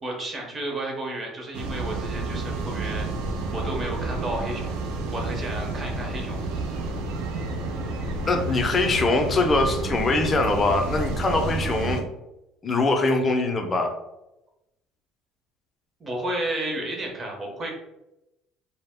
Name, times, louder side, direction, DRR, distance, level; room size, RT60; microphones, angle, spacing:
voice 1, 0.0-3.1 3.5-4.8 5.1-6.4 16.0-17.7, right 1 dB, 30° right, 0 dB, 0.8 m, -32 dB
sound 1, 1.5-12.0, right 2 dB, 85° right, 0.4 m, -30 dB
voice 2, 8.3-12.0 12.6-14.0, left 2 dB, 30° left, 3 dB, 0.5 m, -23 dB
2.0 x 2.0 x 3.5 m, 0.92 s
supercardioid pair, 90°, 0 cm